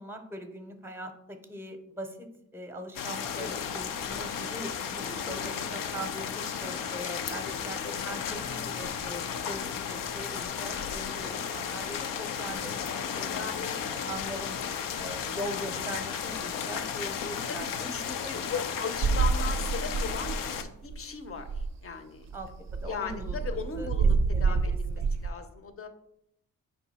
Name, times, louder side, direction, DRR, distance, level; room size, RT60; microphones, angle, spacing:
voice 1, 0.0-14.6 15.0-18.6 22.3-23.9 24.3-25.1, right 1 dB, 5° right, 6 dB, 0.7 m, -41 dB
sound 1, 2.9-20.6, left 7 dB, 85° left, 0.5 m, -34 dB
voice 2, 7.3-8.0 13.3-13.9 17.3-17.7 17.9-22.4 22.8-25.9, left 5 dB, 45° left, 8 dB, 0.6 m, -38 dB
sound 2, 19.0-20.6 20.9-21.0 21.3-21.8 22.3-25.3, right 4 dB, 55° right, 0.4 m, -27 dB
4.7 x 2.7 x 4.1 m, 0.79 s
cardioid pair, 60°, 33 cm